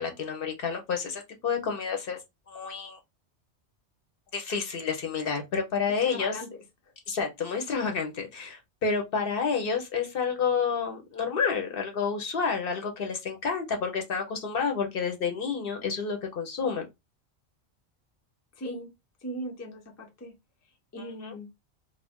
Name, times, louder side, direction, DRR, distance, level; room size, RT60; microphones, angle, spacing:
voice 1, 0.0-2.2 2.5-3.0 4.3-6.4 7.1-16.9 21.2-21.3, left 5 dB, 60° left, 0.8 m, -29 dB
voice 2, 6.0-6.9 18.6-18.9 19.2-20.3 20.9-21.5, equal, 20° left, 0.5 m, -39 dB
2.4 x 2.1 x 3.4 m
omnidirectional pair, 1.2 m